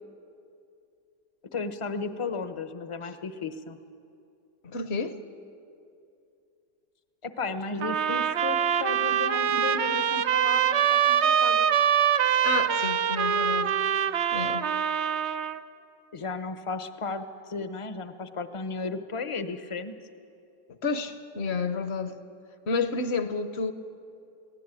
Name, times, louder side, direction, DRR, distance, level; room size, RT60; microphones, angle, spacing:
voice 1, 1.5-3.8 7.2-11.7 16.1-19.9, left 4 dB, 25° left, 10 dB, 0.8 m, -34 dB
voice 2, 4.6-5.2 12.4-13.8 14.3-14.7 20.8-22.2 22.7-23.7, left 4 dB, 45° left, 10 dB, 1.1 m, -30 dB
sound 1, 7.8-15.6, right 8 dB, 60° right, 0.8 m, -24 dB
22.5 x 17.5 x 9.1 m, 2.6 s
omnidirectional pair, 1.7 m